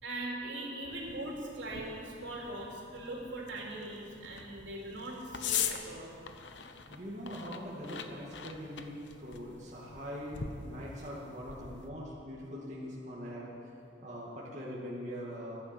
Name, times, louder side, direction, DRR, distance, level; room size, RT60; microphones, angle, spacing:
voice 1, 0.0-6.2, right 1 dB, 75° right, -2 dB, 3.4 m, -41 dB
sound 1, 0.9-11.9, left 8 dB, 70° left, 0.9 m, -42 dB
voice 2, 6.9-13.5 14.0-15.6, equal, 40° right, -6 dB, 2.1 m, -42 dB
15.0 x 11.0 x 7.7 m, 2.7 s
head